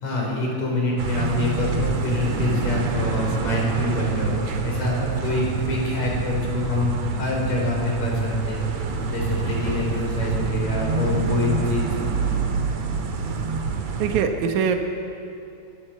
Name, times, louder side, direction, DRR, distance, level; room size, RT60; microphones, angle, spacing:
voice 1, 0.0-8.8 9.1-11.9, left 2 dB, 70° left, -1 dB, 6.0 m, -26 dB
sound 1, 1.0-14.2, right 4 dB, 65° right, 2.6 m, -26 dB
voice 2, 14.0-14.8, right 7 dB, 85° right, 5 dB, 2.6 m, -22 dB
23.0 x 20.0 x 7.4 m, 2.7 s
omnidirectional pair, 3.3 m